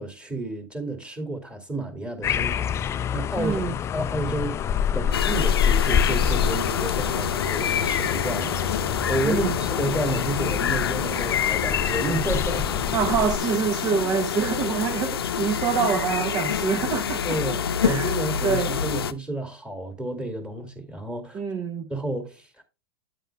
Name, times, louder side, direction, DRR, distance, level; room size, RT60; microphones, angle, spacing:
voice 1, 0.0-3.6 3.9-4.6 4.9-12.7 17.2-21.4 21.9-22.6, right 2 dB, 10° right, 2.3 m, -31 dB
sound 1, 2.2-13.4, left 8 dB, 20° left, 0.4 m, -26 dB
voice 2, 3.4-3.7 9.2-9.6 12.9-18.1 18.4-18.7 21.3-21.9, right 7 dB, 30° right, 0.7 m, -26 dB
sound 2, 5.1-19.1, left 8 dB, 85° left, 0.7 m, -27 dB
9.2 x 8.9 x 2.2 m
hypercardioid pair, 115°, 12 cm